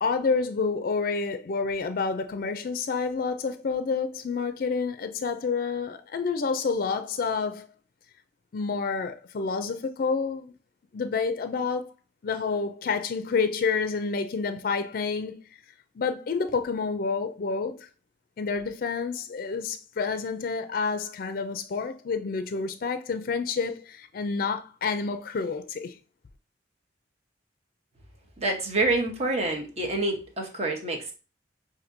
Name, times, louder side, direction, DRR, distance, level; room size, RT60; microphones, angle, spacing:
voice 1, 0.0-7.7 8.5-10.5 10.9-11.9 12.2-15.4 16.0-17.9 18.4-26.0, left 4 dB, 55° left, 0.4 m, -29 dB
voice 2, 28.4-31.1, right 2 dB, 35° right, 1.0 m, -27 dB
5.9 x 2.6 x 2.6 m
head